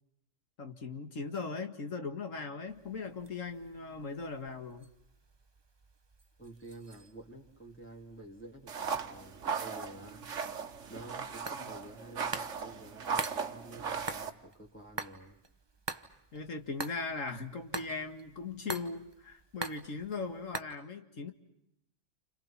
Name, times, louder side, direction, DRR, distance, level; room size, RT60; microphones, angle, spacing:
voice 1, 0.6-4.9 16.3-21.3, left 4 dB, 85° left, 7 dB, 2.4 m, -39 dB
sound 1, 2.7-20.6, right 3 dB, 20° right, 1.0 m, -46 dB
voice 2, 6.4-10.3 10.9-15.4, right 1 dB, 10° left, -2 dB, 3.0 m, -50 dB
sound 2, 8.7-14.3, right 6 dB, 70° right, 1.5 m, -37 dB
30.0 x 29.0 x 5.9 m, 0.79 s
omnidirectional pair, 1.3 m